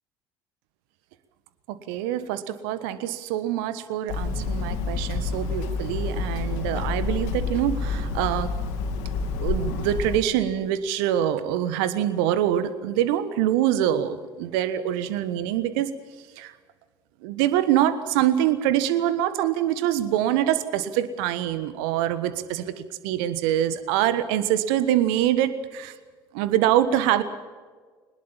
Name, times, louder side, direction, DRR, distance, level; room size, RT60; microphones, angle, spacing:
voice 1, 1.7-8.5 9.4-15.9 16.4-16.5 17.2-25.9 26.3-27.2, right 11 dB, 65° right, 13 dB, 1.3 m, -24 dB
Hammer, 4.1-10.2, left 4 dB, 65° left, 2.9 m, -28 dB
22.5 x 20.0 x 7.4 m, 1.5 s
figure-of-eight pair, 55°, 13 cm